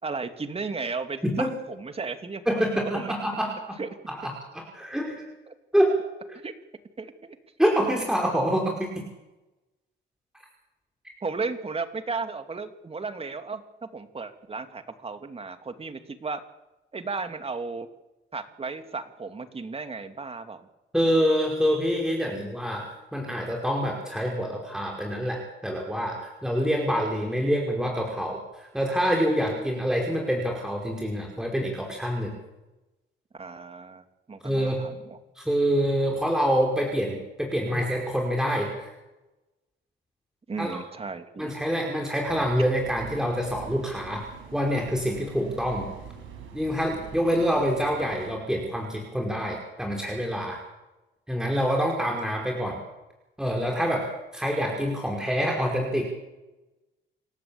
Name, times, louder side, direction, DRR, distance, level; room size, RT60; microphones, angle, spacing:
voice 1, 0.0-3.1 3.8-3.9 5.5-5.6 6.4-6.5 7.0-7.4 11.2-16.4 16.9-17.9 18.3-20.7 22.3-22.4 33.3-35.2 37.7-37.8 40.5-41.5, right 4 dB, 30° right, 8 dB, 2.6 m, -35 dB
voice 2, 2.5-3.8 4.1-5.2 5.7-5.9 7.6-9.0 20.9-32.3 34.4-34.8 35.4-38.9 40.6-40.8 41.4-45.9 46.5-50.6 51.3-52.8 53.4-56.0, equal, 5° right, 0 dB, 5.2 m, -26 dB
sound 1, 42.3-48.3, right 7 dB, 80° right, 7.2 m, -44 dB
28.5 x 12.5 x 8.8 m, 0.98 s
cardioid pair, 90°, 20 cm